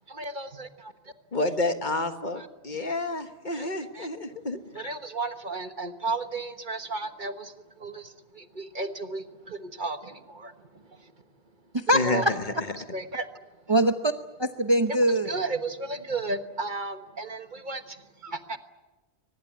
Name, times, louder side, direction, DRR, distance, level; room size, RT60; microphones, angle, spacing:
voice 1, 0.1-0.9 2.4-2.5 3.5-4.4 4.7-11.1 12.0-12.2 12.9-13.5 15.2-18.6, right 3 dB, 45° right, 9 dB, 1.5 m, -34 dB
voice 2, 1.3-4.9 11.9-12.4, left 2 dB, 45° left, 8 dB, 1.7 m, -29 dB
voice 3, 11.7-12.3 13.7-14.1 14.4-15.4, right 1 dB, 25° right, 8 dB, 0.9 m, -23 dB
23.5 x 20.5 x 9.5 m, 1.1 s
omnidirectional pair, 1.1 m